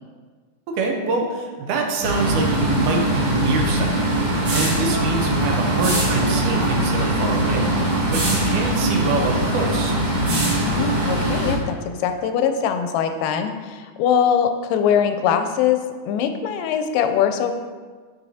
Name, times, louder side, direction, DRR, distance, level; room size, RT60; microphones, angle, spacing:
voice 1, 0.7-4.1 4.5-10.0, right 3 dB, 75° right, 2 dB, 2.3 m, -25 dB
sound 1, 2.0-11.6, right 1 dB, 60° right, 2.4 m, -21 dB
voice 2, 10.2-17.5, left 8 dB, 90° left, 8 dB, 2.2 m, -22 dB
10.0 x 4.6 x 2.8 m, 1.5 s
omnidirectional pair, 3.7 m